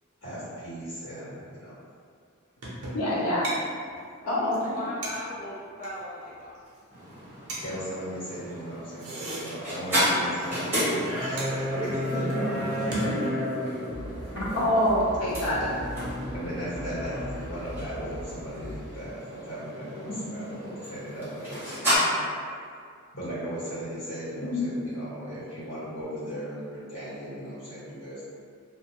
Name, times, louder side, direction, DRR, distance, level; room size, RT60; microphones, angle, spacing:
voice 1, 0.2-1.8 7.6-12.7 16.3-22.3 23.1-28.2, equal, 60° left, -11 dB, 1.2 m, -37 dB
sound 1, 2.6-3.1 3.4-3.6 3.9-4.0 4.2-4.3 4.5-4.7 5.0-6.0 6.5-6.8 7.1-7.2 7.5-7.6 8.8-10.0 10.3-10.4 10.6-10.8 11.0-13.6, right 1 dB, 85° right, 0.6 m, -38 dB
voice 2, 2.9-3.5 4.3-4.6 4.8-4.9 12.1-12.5 12.8-13.3 14.3-15.7 20.1-20.4 24.4-24.6, equal, 80° left, -6 dB, 0.6 m, -27 dB
voice 3, 4.2-6.5, left 1 dB, 40° left, -6 dB, 0.5 m, -38 dB
sound 2, 6.9-22.0, equal, 10° right, 1.0 m, -32 dB
sound 3, 13.9-18.9, equal, 45° right, 0.4 m, -41 dB
2.2 x 2.1 x 2.8 m, 2.2 s
head